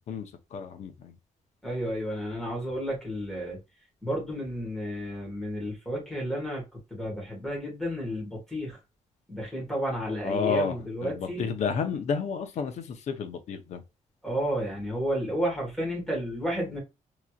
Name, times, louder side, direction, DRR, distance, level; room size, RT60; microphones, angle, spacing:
voice 1, 0.1-1.1 10.2-10.8 11.0-13.8, left 6 dB, 60° left, 0.8 m, -31 dB
voice 2, 1.6-3.6 4.0-6.6 6.9-8.8 9.3-11.4 14.2-16.8, equal, 5° left, 1.9 m, -32 dB
4.0 x 3.1 x 2.4 m
cardioid pair, 165°, 13 cm